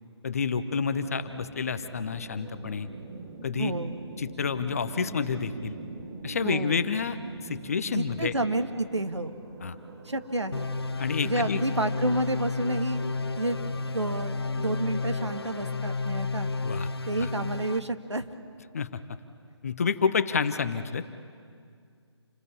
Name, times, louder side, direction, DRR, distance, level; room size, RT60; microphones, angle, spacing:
voice 1, 0.2-2.9 3.4-3.7 4.2-5.8 6.2-7.2 7.4-8.3 9.6-9.8 11.0-11.6 16.6-16.9 17.2-17.3 18.7-18.9 19.6-21.0, left 6 dB, 30° left, 12 dB, 0.9 m, -29 dB
sound 1, 0.7-15.7, right 3 dB, 30° right, 2.1 m, -44 dB
voice 2, 3.6-4.0 6.4-6.8 7.9-9.4 10.1-10.7 11.2-13.6 13.9-16.5 17.1-18.3, right 2 dB, 75° right, 8 dB, 1.8 m, -30 dB
sound 2, 10.5-17.8, left 4 dB, 60° left, 0.9 m, -32 dB
28.5 x 20.0 x 8.6 m, 2.2 s
figure-of-eight pair, 150°, 15 cm